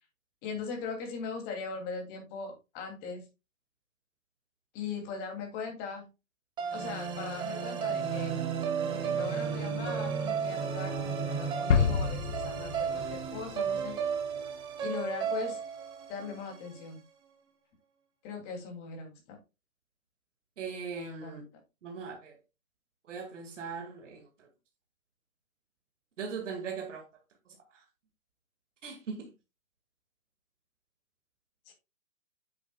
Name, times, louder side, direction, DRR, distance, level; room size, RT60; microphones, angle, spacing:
voice 1, 0.4-3.3 4.7-6.1 6.7-8.4 8.9-14.0 14.8-15.6 16.1-17.0 18.2-19.4 21.2-21.4 31.7-31.8, left 5 dB, 25° left, 2.8 m, -39 dB
sound 1, 6.6-16.8, right 6 dB, 10° right, 1.0 m, -33 dB
sound 2, 11.7-14.4, left 6 dB, 60° left, 1.1 m, -29 dB
voice 2, 20.6-21.5 21.8-22.4 23.1-24.5 26.2-27.1 27.7-27.8 28.8-29.3, right 5 dB, 60° right, 2.2 m, -39 dB
9.4 x 7.7 x 2.3 m
hypercardioid pair, 150°, 41 cm